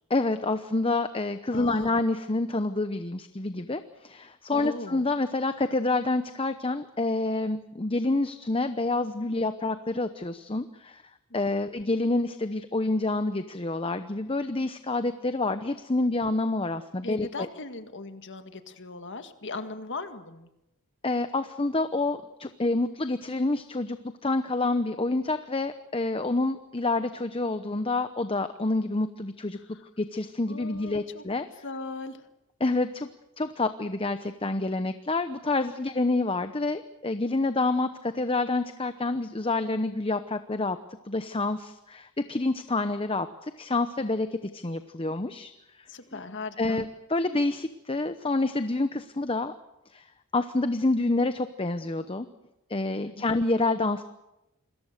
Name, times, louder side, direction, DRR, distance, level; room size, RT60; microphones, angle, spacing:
voice 1, 0.1-11.0 11.3-17.5 21.0-29.6 30.0-31.5 32.6-33.1 33.4-40.8 41.1-45.5 45.8-45.9 46.1-46.2 46.6-49.5 49.9-50.1 50.3-52.3 52.7-54.0, left 2 dB, 25° left, 10 dB, 0.8 m, -28 dB
voice 2, 1.5-2.0 4.5-5.0 16.0-16.1 17.0-20.5 29.7-29.8 30.5-31.2 31.6-32.2 45.9-46.8 53.0-53.4, left 3 dB, 55° left, 8 dB, 1.9 m, -38 dB
27.5 x 21.5 x 6.7 m, 0.90 s
head